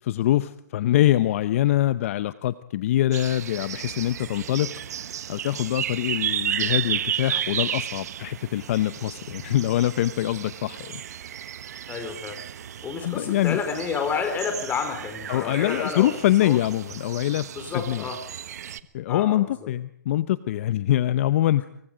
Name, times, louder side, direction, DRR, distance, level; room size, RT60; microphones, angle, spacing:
voice 1, 0.0-4.7 5.3-11.0 13.0-13.6 15.3-18.0 18.9-21.6, left 13 dB, 50° left, 15 dB, 0.8 m, -24 dB
sound 1, 3.1-18.8, right 10 dB, 65° right, 1.2 m, -33 dB
voice 2, 11.9-12.4 12.8-16.1 16.4-16.6 17.5-18.2 19.1-19.5, left 6 dB, 15° left, 6 dB, 4.6 m, -30 dB
27.0 x 23.5 x 5.2 m, 0.70 s
hypercardioid pair, 140°, 9 cm